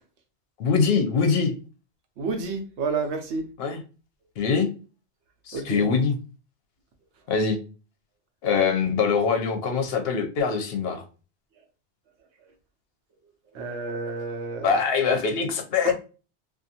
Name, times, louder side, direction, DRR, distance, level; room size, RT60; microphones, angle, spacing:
voice 1, 0.6-1.5 3.6-3.8 4.4-4.7 5.5-6.2 7.3-7.6 8.4-11.0 14.6-15.9, left 5 dB, 70° left, 0.8 m, -23 dB
voice 2, 2.2-3.4 5.5-5.8 13.5-14.8 15.8-15.9, right 4 dB, 80° right, 0.9 m, -30 dB
2.5 x 2.4 x 2.7 m
omnidirectional pair, 1.1 m